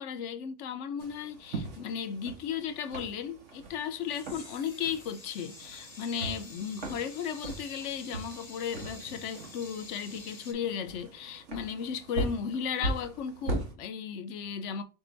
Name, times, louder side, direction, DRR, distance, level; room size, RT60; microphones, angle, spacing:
voice 1, 0.0-14.8, left 7 dB, 80° left, 0.9 m, -35 dB
sound 1, 1.0-13.7, right 2 dB, 80° right, 1.3 m, -40 dB
sound 2, 4.0-10.5, left 3 dB, 30° left, 0.7 m, -49 dB
4.3 x 2.7 x 4.3 m
omnidirectional pair, 1.2 m